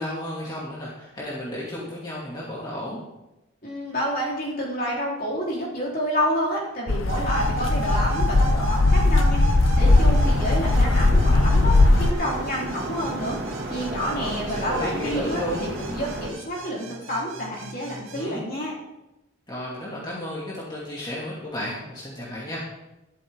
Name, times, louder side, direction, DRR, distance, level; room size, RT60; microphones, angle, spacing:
voice 1, 0.0-3.0 14.1-15.6 18.1-18.4 19.5-22.6, left 1 dB, 20° left, -6 dB, 2.5 m, -33 dB
voice 2, 3.6-9.4 9.7-18.7, equal, 45° left, -4 dB, 3.8 m, -29 dB
sound 1, 6.9-12.1, left 2 dB, 75° left, 0.8 m, -19 dB
sound 2, 7.1-18.2, right 2 dB, 80° right, 2.5 m, -35 dB
sound 3, 9.8-16.3, right 1 dB, 55° right, 2.4 m, -33 dB
13.0 x 12.0 x 3.7 m, 0.96 s
head